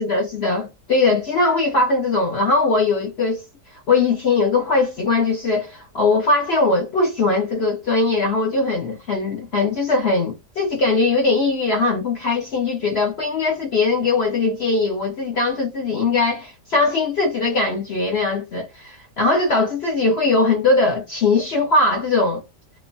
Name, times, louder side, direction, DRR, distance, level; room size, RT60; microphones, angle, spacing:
voice 1, 0.0-3.4 3.7-22.4, left 3 dB, 60° left, 0.7 m, -20 dB
3.0 x 2.1 x 2.5 m
omnidirectional pair, 1.8 m